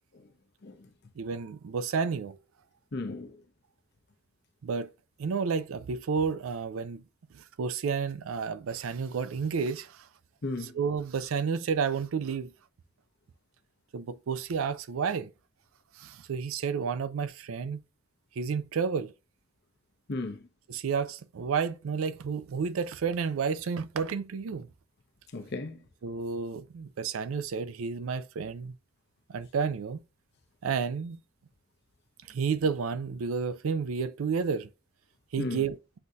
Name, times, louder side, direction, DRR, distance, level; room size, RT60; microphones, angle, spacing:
voice 1, 1.2-2.4 4.6-4.9 5.2-7.0 7.3-10.1 10.6-12.5 13.9-15.3 16.0-17.8 18.4-19.1 20.7-24.7 26.0-28.7 29.3-30.0 30.6-31.2 32.3-34.7 35.3-35.8, right 5 dB, 85° right, 0.4 m, -31 dB
voice 2, 2.9-3.4 10.4-10.8 20.1-20.4 25.3-25.8 35.4-35.6, left 2 dB, 55° left, 0.8 m, -35 dB
7.8 x 2.7 x 2.3 m
head